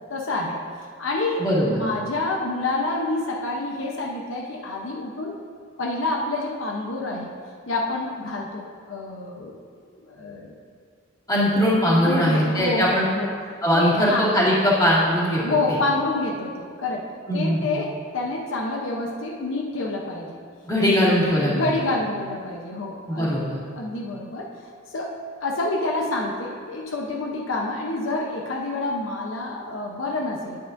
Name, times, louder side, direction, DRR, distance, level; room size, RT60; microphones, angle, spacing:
voice 1, 0.1-0.6 1.0-5.4 5.8-7.3 7.7-9.6 10.1-10.5 12.0-13.3 13.7-14.3 15.4-17.1 17.3-20.4 21.5-23.3 23.7-24.5 24.9-25.1 25.4-30.6, left 2 dB, 75° left, 0 dB, 0.8 m, -28 dB
voice 2, 1.4-1.8 11.3-13.0 13.6-15.4 15.7-15.8 17.3-17.6 20.7-21.7 23.1-23.6, equal, 20° left, -8 dB, 2.1 m, -20 dB
9.6 x 8.8 x 2.6 m, 2.1 s
head